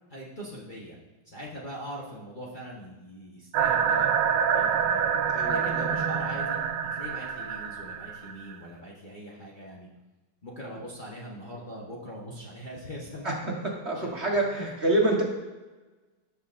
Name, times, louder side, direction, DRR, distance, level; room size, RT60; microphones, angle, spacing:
voice 1, 0.1-1.0 1.2-4.1 4.4-5.1 5.5-6.6 6.9-9.9 10.4-13.3 13.9-14.1 14.6-14.7, equal, 30° left, -6 dB, 1.3 m, -41 dB
sound 1, 3.5-8.6, right 7 dB, 85° right, 1.3 m, -26 dB
voice 2, 5.2-5.9 13.2-13.5 13.8-15.2, right 2 dB, 40° right, -2 dB, 1.7 m, -27 dB
18.0 x 6.5 x 2.6 m, 1.2 s
omnidirectional pair, 1.9 m